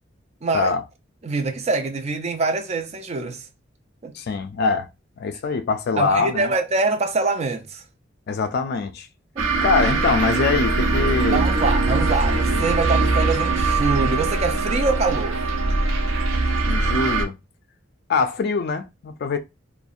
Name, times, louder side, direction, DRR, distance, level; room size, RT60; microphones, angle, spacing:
voice 1, 0.4-0.7 1.2-3.5 4.0-4.1 6.0-7.8 9.4-9.5 11.3-15.4, right 3 dB, 35° right, 0.4 m, -24 dB
voice 2, 4.1-4.9 5.2-6.5 8.3-9.1 9.6-11.4 16.6-17.3 18.1-19.4, left 4 dB, 55° left, 0.3 m, -23 dB
sound 1, 9.4-17.2, right 3 dB, 90° right, 0.5 m, -21 dB
2.6 x 2.1 x 2.4 m
head